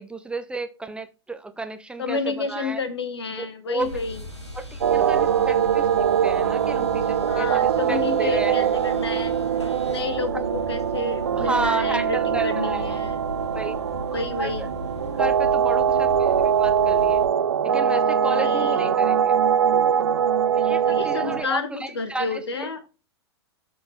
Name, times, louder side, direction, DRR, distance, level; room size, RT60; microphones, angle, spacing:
voice 1, 0.0-2.8 3.3-4.0 4.5-8.7 11.4-13.0 13.5-13.7 14.1-14.7 15.1-17.2 17.6-19.4 20.5-22.7, right 2 dB, 5° right, 0.5 m, -32 dB
voice 2, 2.0-4.2 7.3-9.3 9.8-13.2 14.1-14.7 18.3-18.9 20.8-22.8, left 4 dB, 70° left, 1.3 m, -30 dB
sound 1, 3.8-17.3, left 2 dB, 90° left, 1.6 m, -38 dB
sound 2, 4.8-21.4, right 8 dB, 70° right, 0.6 m, -22 dB
12.5 x 4.3 x 3.2 m
figure-of-eight pair, 100°, 14 cm